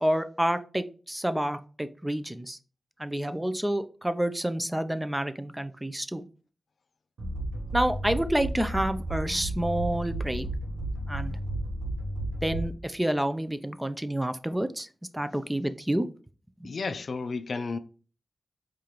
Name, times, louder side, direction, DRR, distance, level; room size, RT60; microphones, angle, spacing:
voice 1, 0.0-2.6 3.0-6.2 7.7-10.5 11.1-11.4 12.4-14.9 15.1-16.0 16.6-16.7, right 1 dB, 10° right, 0.4 m, -29 dB
sound 1, 7.2-13.0, right 1 dB, 90° right, 0.8 m, -33 dB
voice 2, 16.6-17.8, left 4 dB, 70° left, 0.3 m, -32 dB
4.7 x 2.5 x 3.0 m
cardioid pair, 60°, 0 cm